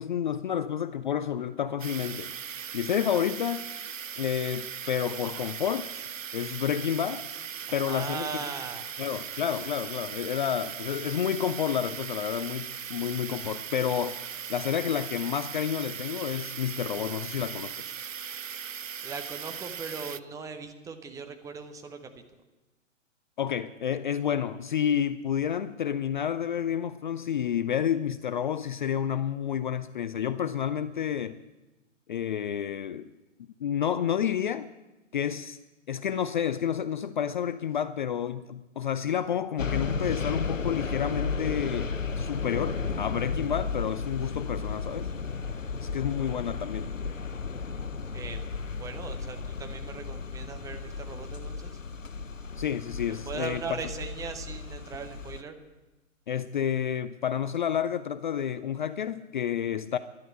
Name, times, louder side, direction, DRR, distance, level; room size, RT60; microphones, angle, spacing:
voice 1, 0.0-2.3 2.7-3.7 4.2-5.9 6.3-7.2 7.7-8.3 9.0-14.2 14.5-17.9 23.4-31.4 32.1-33.1 33.6-34.7 35.1-35.6 35.9-45.1 45.8-46.9 52.6-53.6 56.3-60.0, left 9 dB, 40° left, 14 dB, 0.5 m, -30 dB
sound 1, 1.8-20.2, right 8 dB, 90° right, 0.5 m, -39 dB
voice 2, 7.7-8.9 19.0-22.1 48.1-48.4 48.8-51.8 53.3-55.6, right 5 dB, 10° right, 6 dB, 0.9 m, -39 dB
sound 2, 39.6-55.4, left 5 dB, 90° left, 0.8 m, -34 dB
12.0 x 11.5 x 8.5 m, 1.1 s
figure-of-eight pair, 120°, 38 cm